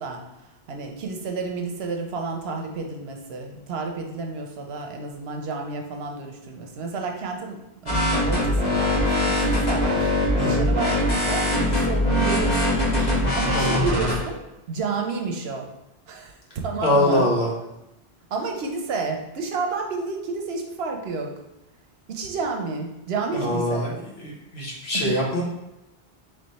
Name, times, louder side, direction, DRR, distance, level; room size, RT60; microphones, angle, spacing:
voice 1, 0.0-9.0 9.3-14.4 14.7-15.7 16.1-17.2 18.3-21.3 22.1-23.9 24.9-25.1, right 4 dB, 80° right, 2 dB, 0.9 m, -31 dB
sound 1, 7.9-14.1, left 1 dB, 45° left, 1.4 m, -22 dB
voice 2, 10.4-10.7 13.0-13.1 13.5-13.8 16.8-17.5 23.3-23.9 24.2-25.4, left 1 dB, 85° left, -3 dB, 1.4 m, -23 dB
3.4 x 3.4 x 4.0 m, 0.93 s
omnidirectional pair, 1.0 m